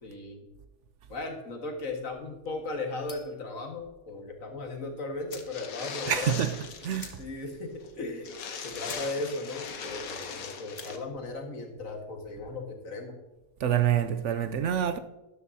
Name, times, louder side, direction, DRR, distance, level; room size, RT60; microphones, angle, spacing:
voice 1, 0.0-0.5 1.1-6.4 7.2-8.3 8.6-13.2, left 2 dB, 70° left, 2.0 m, -37 dB
sound 1, 3.0-3.4 4.8-4.9 5.2-5.6 6.0-6.1 6.3-6.4 6.9-7.5 7.9-8.0 8.5-8.6 8.8-9.1 9.5-9.8 10.6-10.9, left 5 dB, 50° left, 1.3 m, -47 dB
sound 2, 5.3-7.2 7.5-7.6 7.8-7.9 8.2-11.0, left 6 dB, 90° left, 1.5 m, -39 dB
voice 2, 6.1-7.2 13.6-15.0, right 9 dB, 65° right, 0.8 m, -27 dB
12.5 x 11.0 x 2.7 m
omnidirectional pair, 1.5 m